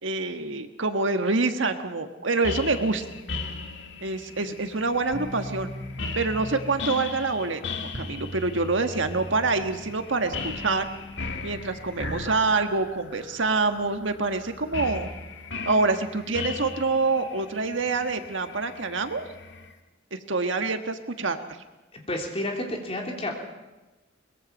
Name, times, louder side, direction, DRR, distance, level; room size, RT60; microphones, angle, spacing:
voice 1, 0.0-3.0 4.0-5.7 6.1-10.9 11.4-15.1 15.6-19.3 20.1-21.4, right 3 dB, 85° right, 7 dB, 1.5 m, -26 dB
sound 1, 2.4-19.7, left 3 dB, 65° left, 1.8 m, -38 dB
sound 2, 5.1-10.7, equal, 40° right, 2.1 m, -40 dB
voice 2, 21.9-23.3, left 1 dB, 30° left, 0 dB, 3.4 m, -30 dB
23.0 x 21.0 x 5.4 m, 1.1 s
head